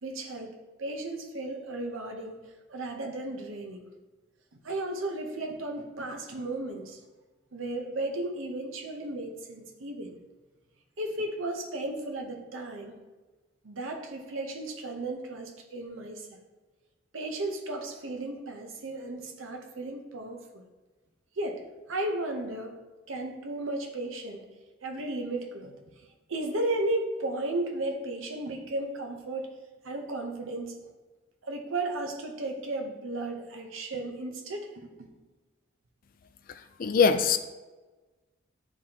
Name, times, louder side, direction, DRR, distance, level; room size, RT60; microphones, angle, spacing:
voice 1, 0.0-2.4 2.7-3.9 4.6-7.0 7.5-10.2 11.0-13.0 13.6-16.4 17.1-20.6 21.4-21.6 21.9-22.8 23.1-24.5 24.8-25.8 26.3-29.5 29.8-30.8 31.4-35.1, right 2 dB, 80° right, 3 dB, 0.8 m, -34 dB
voice 2, 36.5-37.4, left 5 dB, 45° left, 9 dB, 0.3 m, -23 dB
9.6 x 3.5 x 2.9 m, 1.2 s
head